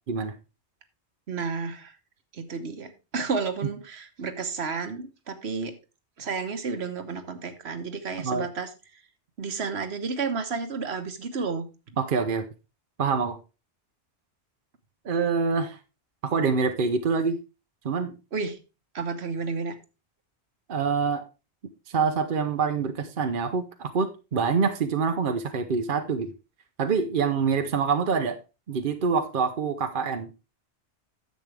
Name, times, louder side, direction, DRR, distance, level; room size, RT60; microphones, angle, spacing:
voice 1, 1.3-2.0 2.3-5.7 6.2-8.7 9.4-11.6 18.3-18.6 18.9-19.8, right 4 dB, 70° right, 8 dB, 1.3 m, -31 dB
voice 2, 12.0-12.4 13.0-13.4 15.0-15.8 16.2-17.4 17.8-18.1 20.7-21.2 21.9-26.3 26.8-28.4 28.7-30.3, right 5 dB, 55° right, 7 dB, 0.9 m, -25 dB
10.5 x 7.6 x 3.3 m, 0.29 s
omnidirectional pair, 1.1 m